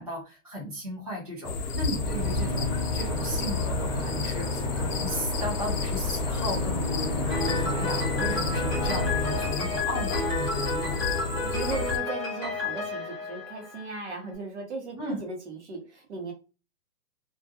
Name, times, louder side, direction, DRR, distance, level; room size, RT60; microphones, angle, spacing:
voice 1, 0.0-11.2 15.0-15.2, equal, 25° right, -7 dB, 0.4 m, -35 dB
sound 1, 1.4-12.0, left 4 dB, 75° left, 0.6 m, -31 dB
sound 2, 1.9-9.5, left 1 dB, 5° right, 1.1 m, -33 dB
Piano, 7.3-14.1, left 2 dB, 20° left, 0.8 m, -32 dB
voice 2, 11.3-16.3, right 3 dB, 50° right, 3 dB, 0.8 m, -37 dB
2.2 x 2.1 x 2.8 m, 0.33 s
hypercardioid pair, 175°, 46 cm